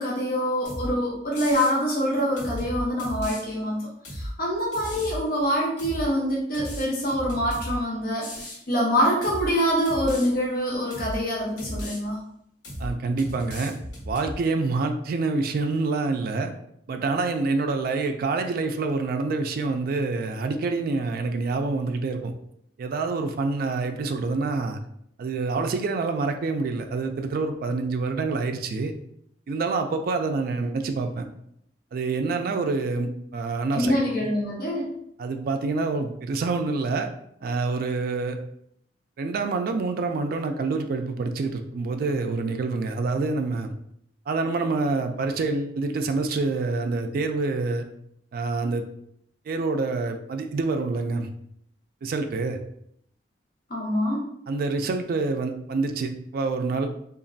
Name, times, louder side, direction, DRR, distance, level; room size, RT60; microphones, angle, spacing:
voice 1, 0.0-12.2 33.7-34.9 53.7-54.2, equal, 55° left, -3 dB, 0.7 m, -25 dB
sound 1, 0.6-0.9 1.3-1.7 2.4-3.4 4.0-4.3 4.7-5.2 5.8-6.1 6.5-7.8 8.2-8.6 9.2-9.5 9.8-10.3 10.9-11.2 11.6-12.0 12.6-12.9 13.2-14.3, equal, 85° left, 1.2 m, -35 dB
voice 2, 12.8-13.7 14.1-16.5 16.9-22.3 22.8-24.8 25.2-28.9 29.5-31.3 31.9-34.0 35.2-37.1 37.4-38.4 39.2-43.7 44.3-47.8 48.3-48.8 49.5-51.3 52.0-52.6 54.5-56.9, right 3 dB, 55° right, 6 dB, 0.3 m, -27 dB
3.0 x 2.4 x 2.6 m, 0.71 s
head